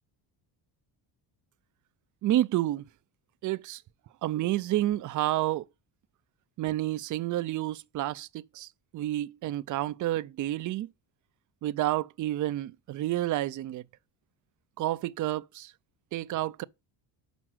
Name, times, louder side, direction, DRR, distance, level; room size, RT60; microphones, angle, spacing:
voice 1, 2.2-2.8 3.4-3.8 4.2-5.6 6.6-8.3 8.5-8.7 8.9-10.9 11.6-13.8 14.8-15.7 16.1-16.6, right 14 dB, 40° right, 0.4 m, -29 dB
6.2 x 4.4 x 6.0 m
cardioid pair, 110°, 48 cm